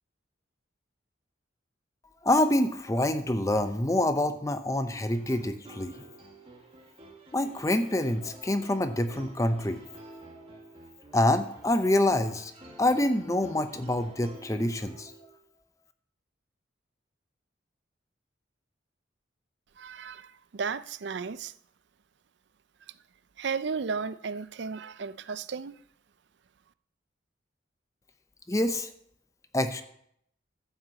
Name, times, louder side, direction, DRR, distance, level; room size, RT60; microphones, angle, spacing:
voice 1, 2.2-5.9 7.3-9.8 10.1-10.2 11.1-12.5 12.8-15.1 28.5-28.9 29.5-29.8, left 1 dB, 15° left, 0.7 m, -26 dB
sound 1, 4.9-15.4, right 1 dB, 30° right, 1.7 m, -50 dB
voice 2, 19.8-21.5 23.4-25.7, right 5 dB, 65° right, 0.5 m, -34 dB
11.5 x 6.2 x 7.5 m
head